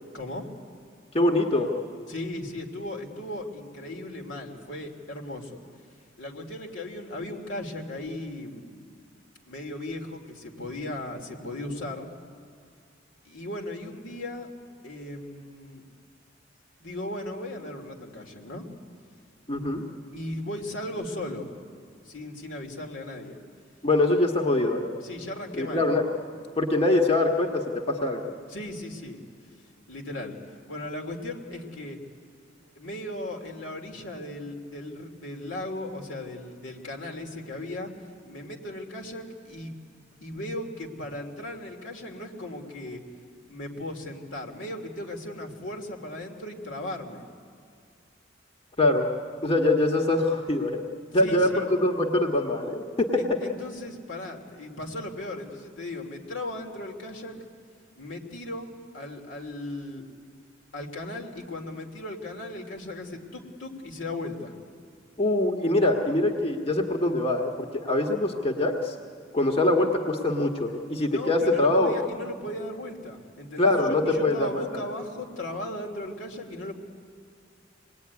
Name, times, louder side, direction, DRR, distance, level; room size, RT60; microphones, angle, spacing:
voice 1, 0.1-0.5 2.1-5.6 6.2-8.8 9.4-12.1 13.2-14.5 14.8-15.8 16.8-18.7 20.1-21.6 22.0-23.4 25.0-25.9 28.5-29.2 29.9-30.4 30.7-32.0 32.7-37.9 38.2-43.0 43.5-47.3 51.1-51.7 53.2-57.4 58.0-60.1 60.7-64.5 71.1-76.7, left 1 dB, 80° left, 2 dB, 3.0 m, -37 dB
voice 2, 1.1-1.7 19.5-19.8 23.8-24.9 25.6-26.0 26.6-28.3 48.8-49.1 49.4-50.8 51.1-53.1 65.2-69.0 69.3-71.9 73.6-74.6, left 2 dB, 30° left, 1 dB, 1.5 m, -23 dB
26.0 x 20.0 x 9.6 m, 2.2 s
head